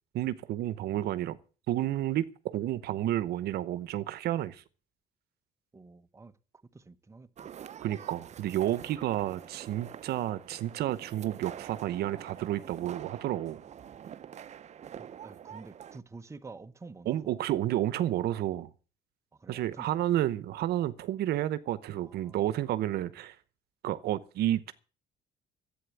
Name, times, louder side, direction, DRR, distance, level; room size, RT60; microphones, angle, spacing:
voice 1, 0.1-1.4 1.7-4.6 7.8-13.6 17.1-18.7 19.5-23.4 23.8-24.7, right 13 dB, 70° right, 0.9 m, -31 dB
voice 2, 5.7-6.3 6.7-7.5 15.0-17.3 19.3-20.2 21.9-22.9, right 3 dB, 15° right, 1.0 m, -50 dB
sound 1, 7.4-16.0, right 9 dB, 40° right, 0.7 m, -46 dB
11.5 x 8.6 x 8.2 m
cardioid pair, 110°, 17 cm